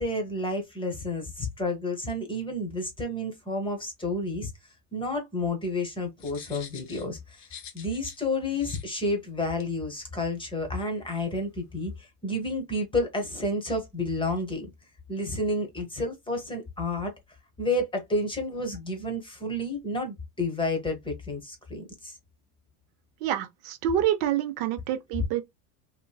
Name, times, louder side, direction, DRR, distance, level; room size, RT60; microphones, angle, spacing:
voice 1, 0.0-4.5 4.9-7.4 7.7-14.7 15.1-17.1 17.6-22.2, left 1 dB, 10° left, 0.8 m, -30 dB
sound 1, 6.2-8.2 8.5-8.8 9.6-9.7, left 8 dB, 40° left, 0.8 m, -46 dB
voice 2, 23.2-25.4, right 10 dB, 60° right, 0.6 m, -27 dB
2.9 x 2.6 x 2.2 m
supercardioid pair, 130°, 43 cm